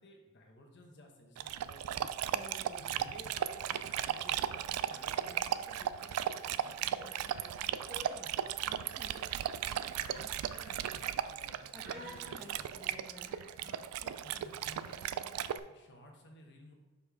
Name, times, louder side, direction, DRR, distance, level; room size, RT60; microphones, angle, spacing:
voice 1, 0.0-2.3 2.8-8.6 9.2-9.3 9.7-11.6 11.8-13.1 13.6-16.7, left 1 dB, 50° left, 2 dB, 1.1 m, -56 dB
Dog, 1.4-15.6, right 10 dB, 90° right, 0.3 m, -36 dB
voice 2, 2.3-2.9 8.6-9.1 11.7-13.5, left 1 dB, ahead, -1 dB, 0.8 m, -53 dB
Human voice, 3.6-5.4 5.7-6.3 7.0-8.2 8.9-9.2 10.0-10.2 10.5-10.8 11.8-12.3 13.1-13.7 14.7-15.0, equal, 45° right, 1.1 m, -54 dB
6.7 x 5.3 x 3.5 m, 1.2 s
head